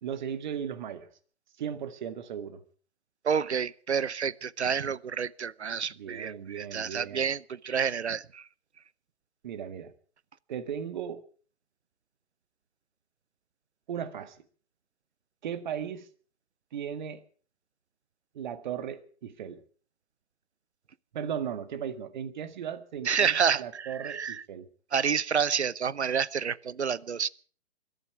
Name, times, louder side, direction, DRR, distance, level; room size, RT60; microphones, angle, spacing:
voice 1, 0.0-1.1 1.6-2.6 5.9-7.3 9.4-9.9 10.5-11.2 13.9-14.4 15.4-16.1 16.7-17.2 18.3-19.6 21.1-24.7, right 8 dB, 45° right, 1.8 m, -36 dB
voice 2, 3.2-8.4 23.1-24.4 24.9-27.3, right 7 dB, 80° right, 0.8 m, -29 dB
22.0 x 13.5 x 4.8 m
figure-of-eight pair, 135°, 33 cm